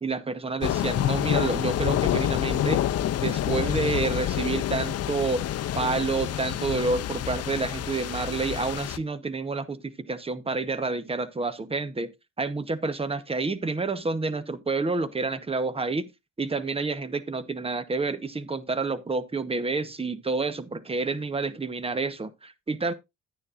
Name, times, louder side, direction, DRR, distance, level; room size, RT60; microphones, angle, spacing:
voice 1, 0.0-2.8 3.2-5.4 5.7-12.1 12.4-16.1 16.4-22.9, right 3 dB, 20° right, 1.0 m, -29 dB
sound 1, 0.6-9.0, left 11 dB, 55° left, 0.6 m, -27 dB
11.0 x 9.5 x 2.5 m
cardioid pair, 90°, 30 cm